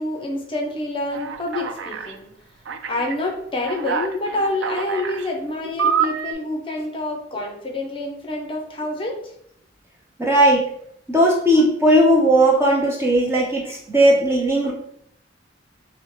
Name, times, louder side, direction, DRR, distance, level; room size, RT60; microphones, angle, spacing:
voice 1, 0.0-2.3 2.9-9.2, left 2 dB, 30° left, 1 dB, 0.7 m, -27 dB
Alarm, 1.1-2.1 2.6-3.1 3.6-5.3 5.8-6.3, right 6 dB, 80° right, 0.4 m, -26 dB
voice 2, 10.2-10.7 11.1-14.7, right 1 dB, 15° right, -2 dB, 0.6 m, -17 dB
6.0 x 2.1 x 3.1 m, 0.69 s
head